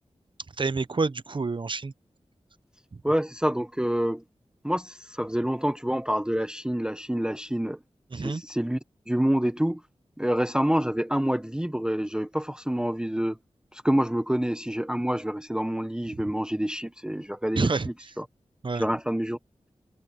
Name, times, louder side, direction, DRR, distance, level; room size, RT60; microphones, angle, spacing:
voice 1, 0.6-1.9 2.9-3.0 8.1-8.4 16.1-16.2 17.6-17.9 18.6-18.8, right 4 dB, 45° right, 0.7 m, -28 dB
voice 2, 3.0-4.2 4.6-7.8 8.1-8.8 9.1-9.8 10.2-13.4 13.7-17.7 18.2-18.3 18.8-19.4, equal, 5° right, 0.7 m, -27 dB
wide cardioid pair, 65°, 12 cm